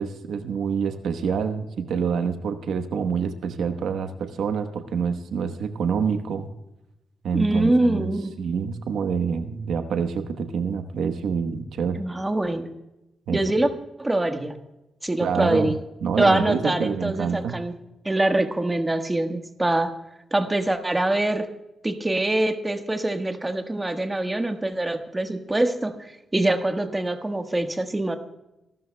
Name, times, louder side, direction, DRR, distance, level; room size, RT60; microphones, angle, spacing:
voice 1, 0.0-6.5 7.2-8.1 8.4-12.0 13.3-13.4 15.2-15.7 16.0-17.5, right 6 dB, 90° right, 8 dB, 1.1 m, -27 dB
voice 2, 7.3-8.3 11.9-12.7 13.3-13.7 14.0-14.5 15.0-15.7 16.2-17.8 18.0-19.9 20.3-21.5 21.8-28.2, right 1 dB, 15° right, 6 dB, 1.4 m, -24 dB
26.0 x 13.0 x 2.2 m, 0.93 s
cardioid pair, 105°, 0 cm